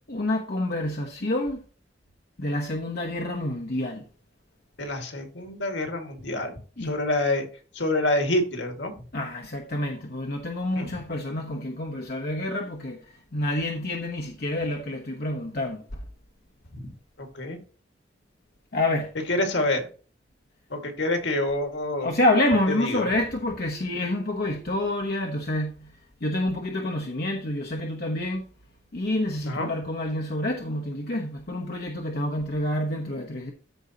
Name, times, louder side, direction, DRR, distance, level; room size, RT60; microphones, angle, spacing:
voice 1, 0.1-1.6 2.4-4.0 6.8-7.0 9.1-13.0 13.3-15.8 18.7-19.2 22.0-25.9 26.2-28.5 28.9-33.5, left 1 dB, 55° left, 1.0 m, -28 dB
voice 2, 4.8-6.5 6.8-7.5 7.8-8.9 10.7-10.9 17.2-17.6 19.3-19.8 20.7-22.1 22.7-23.1 29.5-29.7, left 1 dB, 75° left, 1.9 m, -27 dB
13.5 x 5.3 x 2.9 m
head